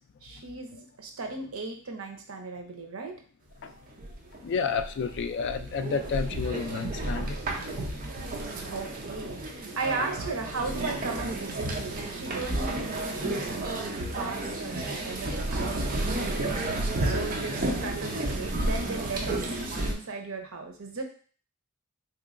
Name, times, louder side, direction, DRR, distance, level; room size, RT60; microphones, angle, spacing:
voice 1, 0.2-3.2 8.7-16.6 17.0-21.0, right 3 dB, 85° right, 4 dB, 0.7 m, -36 dB
sound 1, 3.6-3.7 4.0-19.9, right 2 dB, 40° right, 0.5 m, -32 dB
voice 2, 4.4-7.8 16.4-16.5, left 5 dB, 55° left, 8 dB, 0.3 m, -31 dB
3.7 x 3.0 x 2.5 m, 0.43 s
head